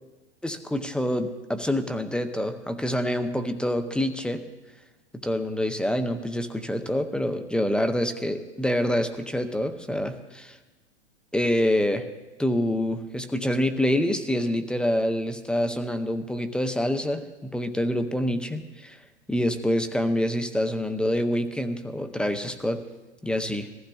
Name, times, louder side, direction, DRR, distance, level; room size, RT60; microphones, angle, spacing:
voice 1, 0.4-4.4 5.2-10.6 11.3-12.1 12.4-19.0 19.3-22.8 23.2-23.7, left 1 dB, 5° left, 8 dB, 0.6 m, -26 dB
21.0 x 15.0 x 2.4 m, 1.2 s
hypercardioid pair, 105°, 35 cm